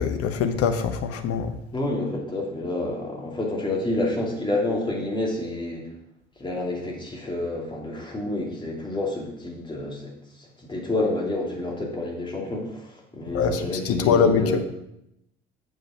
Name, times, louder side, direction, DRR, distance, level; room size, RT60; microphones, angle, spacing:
voice 1, 0.0-1.5 13.3-14.6, left 6 dB, 45° left, 8 dB, 1.0 m, -23 dB
voice 2, 1.7-5.9 6.4-10.1 10.4-14.6, left 2 dB, 15° left, -1 dB, 2.7 m, -29 dB
7.7 x 5.1 x 6.0 m, 0.82 s
figure-of-eight pair, 55°, 31 cm